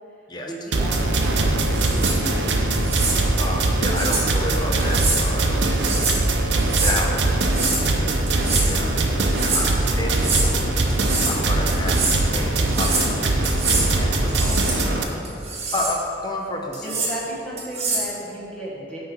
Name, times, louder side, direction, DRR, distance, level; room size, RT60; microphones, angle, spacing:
voice 1, 0.4-2.7 6.9-10.7 16.8-19.0, right 1 dB, 5° left, -7 dB, 1.4 m, -36 dB
sound 1, 0.7-15.0, right 2 dB, 65° right, 0.7 m, -21 dB
sound 2, 1.7-2.2 2.8-3.2 4.0-4.3 4.8-5.2 5.7-6.2 6.6-7.0 7.4-7.9 8.3-8.7 9.2-9.6 10.1-10.5 10.9-11.4 11.7-12.2 12.6-13.1 13.4-13.9 14.3-14.8 15.2-16.0 16.7-17.1 17.6-18.1, right 3 dB, 35° right, 1.3 m, -25 dB
voice 2, 3.4-6.1 6.7-7.1 8.6-8.9 9.4-10.6 11.2-13.0 13.4-15.1 15.7-16.9, left 1 dB, 20° left, 0 dB, 0.8 m, -30 dB
9.3 x 3.8 x 5.9 m, 2.8 s
head